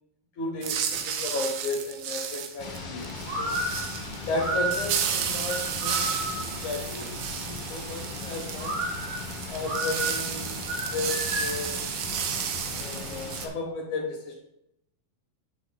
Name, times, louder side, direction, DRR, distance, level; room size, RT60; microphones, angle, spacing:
voice 1, 0.4-3.1 3.4-3.5 4.3-8.9 9.5-10.5 10.9-11.8 12.7-14.4, left 3 dB, 65° left, 0 dB, 2.2 m, -34 dB
sound 1, 0.6-13.5, right 8 dB, 80° right, 2.6 m, -33 dB
sound 2, 2.6-13.5, left 3 dB, 45° left, 2.7 m, -38 dB
sound 3, 3.3-6.6 8.6-11.7, right 1 dB, 55° right, 3.1 m, -32 dB
9.6 x 8.4 x 2.3 m, 0.81 s
omnidirectional pair, 4.4 m